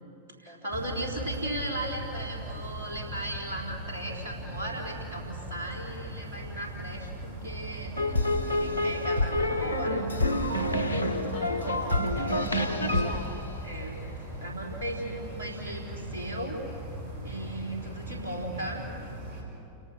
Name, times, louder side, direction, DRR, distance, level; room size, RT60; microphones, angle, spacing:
voice 1, 0.4-8.2 8.5-10.0 11.9-12.5 13.6-14.0 14.4-16.6 17.2-18.8, right 1 dB, 65° right, -1 dB, 4.2 m, -37 dB
sound 1, 0.7-19.4, right 1 dB, 40° right, 6.1 m, -39 dB
sound 2, 8.0-14.3, left 1 dB, 90° right, 1.5 m, -27 dB
voice 2, 11.3-13.4, left 1 dB, 55° left, 2 dB, 4.7 m, -42 dB
29.5 x 18.0 x 6.4 m, 2.8 s
figure-of-eight pair, 90°, 0 cm